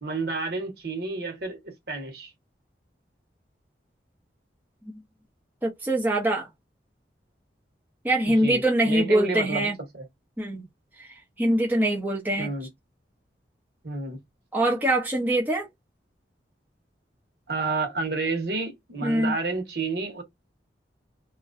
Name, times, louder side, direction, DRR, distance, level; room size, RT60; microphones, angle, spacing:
voice 1, 0.0-2.3 8.4-9.7 9.9-10.0 12.4-12.7 13.8-14.2 17.5-20.2, right 3 dB, 60° right, 1.2 m, -30 dB
voice 2, 5.6-6.5 8.0-9.8 10.4-10.7 11.0-12.5 14.5-15.7 19.0-19.3, right 1 dB, 10° right, 0.6 m, -24 dB
2.9 x 2.4 x 2.5 m
head